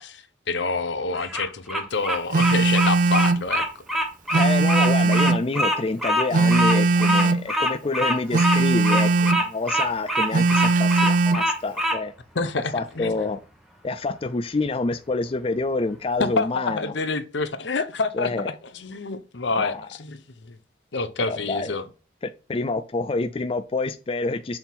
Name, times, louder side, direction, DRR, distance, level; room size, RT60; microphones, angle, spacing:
voice 1, 0.0-3.6 12.3-13.1 16.2-18.4 18.7-20.6 20.9-21.8, left 4 dB, 70° left, 0.8 m, -27 dB
Bird vocalization bird call bird song, 1.1-12.0, equal, ahead, 1.0 m, -24 dB
Telephone, 2.3-3.5 4.3-5.5 6.3-7.5 8.3-9.5 10.3-11.5, right 3 dB, 45° right, 0.4 m, -20 dB
voice 2, 4.4-12.1 12.7-13.4 13.8-16.8 18.1-18.4 19.6-19.7 21.3-21.8 22.2-24.6, left 3 dB, 30° left, 0.4 m, -27 dB
6.9 x 3.6 x 5.8 m
head